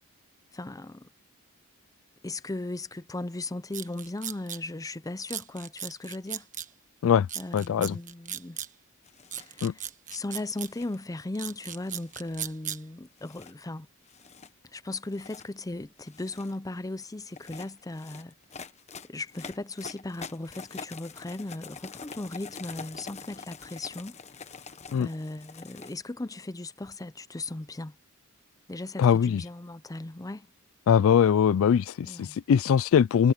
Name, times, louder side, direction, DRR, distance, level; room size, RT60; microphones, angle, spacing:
voice 1, 0.5-1.1 2.2-6.5 7.4-8.6 9.4-13.9 14.7-18.3 19.1-24.2 25.0-28.0 28.7-30.5 32.0-32.4, left 2 dB, 15° left, 0.6 m, -37 dB
sound 1, 3.7-4.6 5.3-6.7 7.3-8.7 9.3-10.7 11.3-12.8, right 10 dB, 35° right, 1.3 m, -37 dB
voice 2, 7.5-8.0 9.6-9.7 24.9-25.1 29.0-29.4 30.9-31.8 32.5-33.3, left 7 dB, 65° left, 0.3 m, -21 dB
sound 2, 9.0-9.5 10.4-11.0 11.7-12.5 13.2-13.5 14.1-14.5 15.0-15.5 16.0-16.6 17.3-26.0, left 5 dB, 30° left, 1.1 m, -45 dB
head